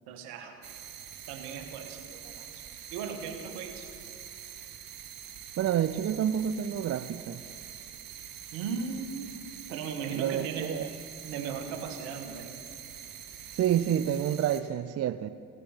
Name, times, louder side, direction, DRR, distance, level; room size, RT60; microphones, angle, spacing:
voice 1, 0.1-0.6 1.3-2.6 2.9-3.8 8.5-9.4 9.7-10.7 11.2-12.6, right 6 dB, 80° right, 6 dB, 1.2 m, -37 dB
sound 1, 0.6-14.6, right 9 dB, 60° right, 1.2 m, -45 dB
voice 2, 5.6-7.4 10.1-10.9 13.5-15.3, right 10 dB, 40° right, 13 dB, 0.5 m, -28 dB
16.0 x 8.1 x 5.7 m, 2.4 s
hypercardioid pair, 55°, 39 cm